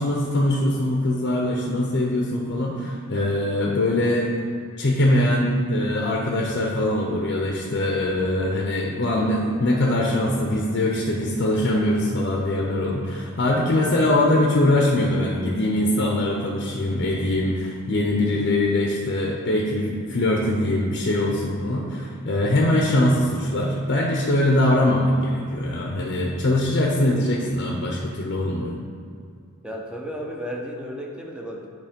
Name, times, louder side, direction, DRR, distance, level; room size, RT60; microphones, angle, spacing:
voice 1, 0.0-4.3 4.8-28.7, left 1 dB, 50° left, -1 dB, 0.7 m, -22 dB
voice 2, 29.6-31.7, equal, 5° right, 0 dB, 0.6 m, -33 dB
8.5 x 3.2 x 5.1 m, 2.3 s
head